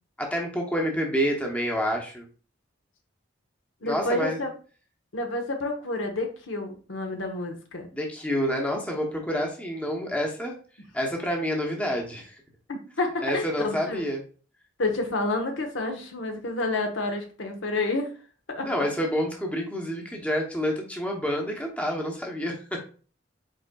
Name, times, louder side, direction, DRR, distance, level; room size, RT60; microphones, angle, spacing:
voice 1, 0.2-2.3 3.8-4.4 7.9-10.5 10.9-12.4 13.2-14.2 18.6-22.5, equal, 5° left, 0 dB, 0.8 m, -28 dB
voice 2, 3.8-4.5 5.1-7.9 12.7-14.0 14.8-18.1 18.5-18.8, left 2 dB, 85° left, 4 dB, 1.0 m, -29 dB
5.2 x 4.3 x 2.2 m, 0.39 s
head